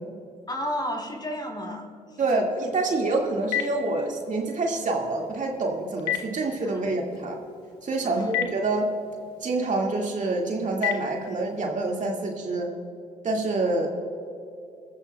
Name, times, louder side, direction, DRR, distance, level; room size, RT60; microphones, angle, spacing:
voice 1, 0.5-2.2 6.6-6.8 8.0-8.3, equal, 25° left, 2 dB, 3.4 m, -32 dB
voice 2, 2.2-7.4 7.8-8.9 9.4-12.7 13.2-13.9, right 2 dB, 45° right, 0 dB, 2.0 m, -26 dB
Telephone, 2.8-11.7, left 11 dB, 80° left, 1.2 m, -36 dB
22.5 x 13.5 x 2.3 m, 2.6 s
hypercardioid pair, 55°, 17 cm